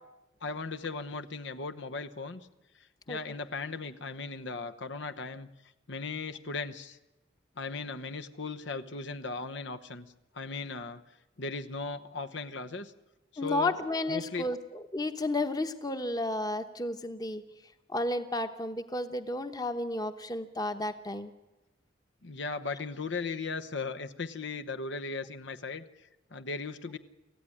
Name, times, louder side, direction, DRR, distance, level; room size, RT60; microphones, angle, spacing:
voice 1, 0.4-2.5 3.1-5.5 5.9-7.0 7.6-11.0 11.4-12.9 13.3-14.5 22.2-27.0, left 4 dB, 70° left, 8 dB, 1.0 m, -37 dB
voice 2, 13.4-17.4 17.9-21.3, left 2 dB, 20° left, 9 dB, 1.1 m, -32 dB
26.0 x 15.0 x 10.0 m, 1.0 s
head